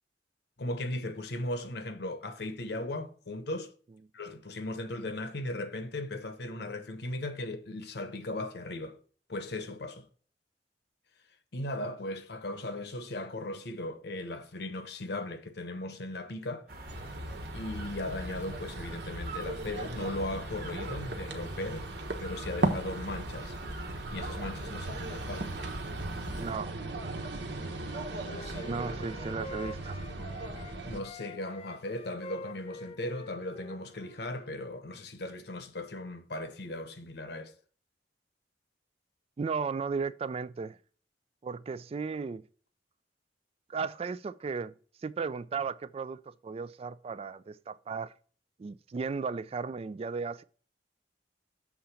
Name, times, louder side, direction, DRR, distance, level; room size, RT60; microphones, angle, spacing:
voice 1, 0.6-3.7 4.1-9.0 9.3-10.1 11.5-16.7 17.5-21.9 22.2-23.6 24.1-25.6 28.2-28.7 30.9-37.5, left 1 dB, 65° left, 1.0 m, -37 dB
sound 1, 16.7-26.5, right 1 dB, 60° right, 1.3 m, -43 dB
sound 2, 16.9-31.0, right 2 dB, 80° right, 1.2 m, -37 dB
voice 2, 26.4-26.7 28.7-30.0 39.4-40.8 41.4-42.4 43.7-44.7 45.0-48.1 48.6-50.4, right 5 dB, 35° right, 0.3 m, -35 dB
Wind instrument woodwind instrument, 27.9-30.8 31.0-34.5, left 2 dB, 35° left, 0.5 m, -46 dB
7.2 x 3.8 x 5.7 m
head